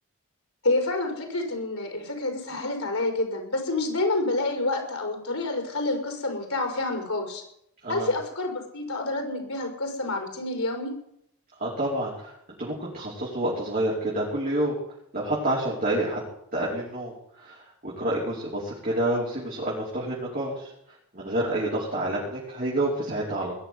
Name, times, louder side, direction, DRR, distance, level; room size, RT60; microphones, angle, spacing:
voice 1, 0.6-7.4 7.9-10.9, left 2 dB, 75° left, 3 dB, 5.4 m, -28 dB
voice 2, 11.6-12.3 12.6-14.8 15.1-16.2 16.5-20.7 21.1-23.5, right 1 dB, 40° right, -6 dB, 5.2 m, -28 dB
20.5 x 7.1 x 9.6 m, 0.75 s
head